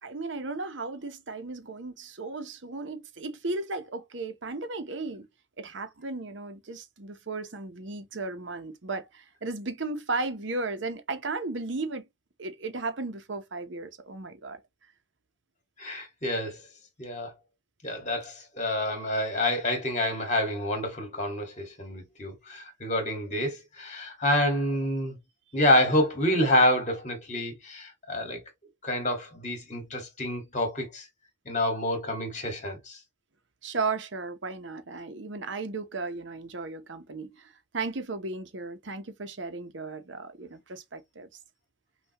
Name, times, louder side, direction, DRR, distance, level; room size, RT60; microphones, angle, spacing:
voice 1, 0.0-5.3 5.6-12.0 12.4-14.6 33.6-41.3, right 3 dB, 75° right, 0.9 m, -35 dB
voice 2, 15.8-16.6 17.0-17.3 17.8-25.2 25.5-28.4 28.8-31.1 31.5-33.0, left 1 dB, 40° left, 1.9 m, -28 dB
5.7 x 2.5 x 3.0 m
head